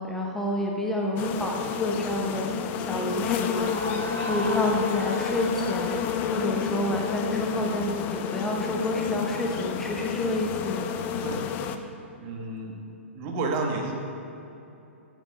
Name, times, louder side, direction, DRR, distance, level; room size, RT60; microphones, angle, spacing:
voice 1, 0.0-2.5 2.8-3.7 4.2-10.9, left 1 dB, 5° left, -1 dB, 1.0 m, -29 dB
sound 1, 1.2-11.8, left 8 dB, 25° left, 0.5 m, -30 dB
sound 2, 3.2-8.0, right 1 dB, 90° right, 0.5 m, -37 dB
voice 2, 12.2-12.8 13.1-13.9, right 3 dB, 35° right, 2 dB, 1.4 m, -31 dB
9.0 x 8.8 x 5.4 m, 2.9 s
figure-of-eight pair, 110°, 7 cm